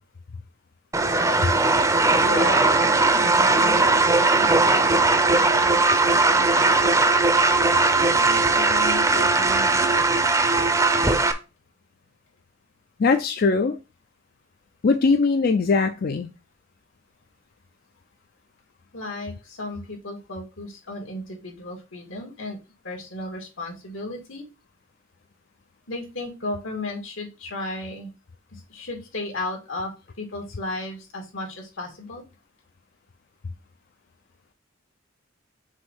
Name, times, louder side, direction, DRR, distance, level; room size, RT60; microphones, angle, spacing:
sound 1, 0.9-11.3, right 3 dB, 15° right, 0.6 m, -19 dB
voice 1, 2.2-4.0 4.3-6.9 7.9-10.1 18.9-22.6 22.8-24.4 25.9-28.1 28.5-29.9 30.2-32.2, left 2 dB, 85° left, 2.3 m, -35 dB
voice 2, 13.0-13.8 14.8-16.3, left 4 dB, 50° left, 0.4 m, -20 dB
6.3 x 2.7 x 5.5 m
head